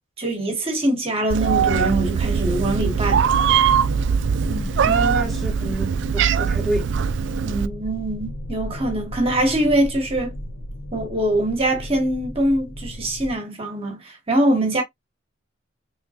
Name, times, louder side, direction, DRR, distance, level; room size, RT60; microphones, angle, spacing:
voice 1, 0.2-3.3 7.4-10.4 10.9-14.8, right 1 dB, 30° right, 1.1 m, -23 dB
Meow, 1.3-7.7, right 7 dB, 60° right, 0.3 m, -21 dB
sound 1, 2.2-13.3, equal, 75° left, 1.0 m, -33 dB
voice 2, 4.5-6.9, equal, ahead, 1.0 m, -29 dB
3.6 x 3.2 x 2.7 m
head